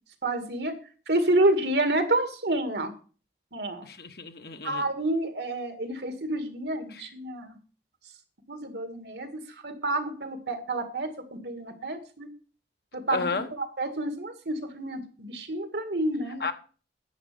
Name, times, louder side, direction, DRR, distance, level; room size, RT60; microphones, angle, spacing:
voice 1, 0.2-0.7 1.1-2.9 3.5-3.8 4.6-7.6 8.5-12.3 12.9-13.3 13.5-16.5, right 1 dB, 75° right, 2.1 m, -29 dB
voice 2, 3.8-4.8 6.9-7.1 13.1-13.5 16.4-16.5, left 4 dB, 60° left, 1.2 m, -32 dB
10.5 x 7.8 x 6.8 m
head